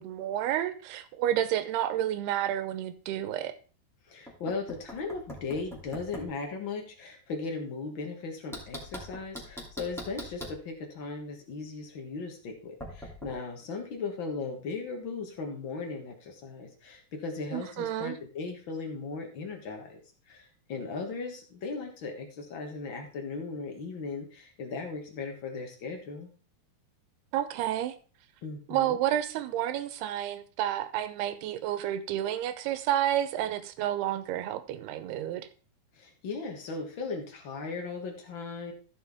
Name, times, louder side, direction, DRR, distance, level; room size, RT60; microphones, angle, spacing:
voice 1, 0.0-3.5 17.5-18.2 27.3-27.9 28.7-35.5, right 11 dB, 85° right, 2.8 m, -30 dB
voice 2, 4.1-20.0 20.3-26.3 28.4-29.0 35.9-38.7, left 4 dB, 75° left, 1.1 m, -37 dB
Knock, 4.3-6.4 8.5-10.6 12.8-13.3, equal, ahead, 1.8 m, -42 dB
14.5 x 6.2 x 3.6 m
omnidirectional pair, 4.5 m